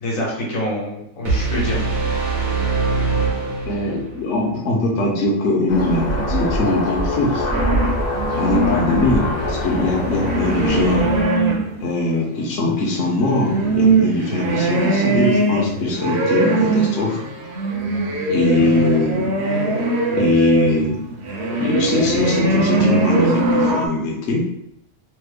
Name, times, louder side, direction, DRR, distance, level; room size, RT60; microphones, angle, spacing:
voice 1, 0.0-1.8 8.5-8.8 18.6-18.9, left 1 dB, 80° left, -3 dB, 1.3 m, -26 dB
sound 1, 1.2-4.2, right 3 dB, 85° right, 1.4 m, -22 dB
voice 2, 3.6-7.5 8.4-11.1 11.8-17.2 18.3-19.3 20.1-21.0 21.6-24.5, left 2 dB, 65° left, -2 dB, 0.9 m, -21 dB
sound 2, 5.7-11.2, equal, 45° left, 0.6 m, -24 dB
sound 3, 7.5-12.0 12.7-23.9, right 2 dB, 60° right, 0.8 m, -21 dB
3.2 x 2.0 x 3.4 m, 0.79 s
omnidirectional pair, 1.4 m